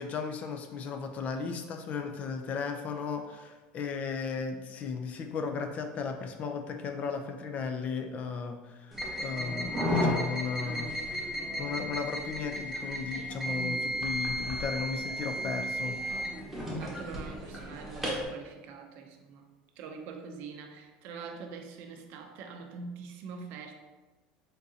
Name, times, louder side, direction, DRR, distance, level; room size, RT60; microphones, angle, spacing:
voice 1, 0.0-10.9 11.6-16.0, left 5 dB, 40° left, 5 dB, 0.5 m, -35 dB
sound 1, 8.9-18.3, equal, 5° right, 1.1 m, -33 dB
voice 2, 13.4-13.9 16.7-19.5 19.8-23.7, right 5 dB, 60° right, 4 dB, 0.6 m, -44 dB
3.9 x 3.7 x 2.8 m, 1.2 s
supercardioid pair, 125°, 4 cm